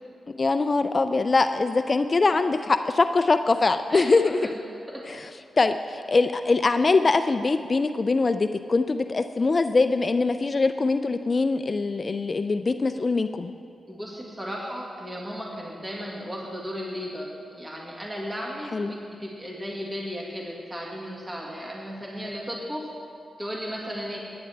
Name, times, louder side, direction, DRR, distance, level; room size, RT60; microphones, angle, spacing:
voice 1, 0.3-4.4 5.6-13.5 18.7-18.9, left 3 dB, 45° left, 9 dB, 0.4 m, -23 dB
voice 2, 3.9-4.5 4.9-5.1 13.9-22.9 23.4-24.2, equal, 20° right, -3 dB, 1.8 m, -35 dB
15.5 x 9.5 x 3.4 m, 2.4 s
cardioid pair, 55°, 0 cm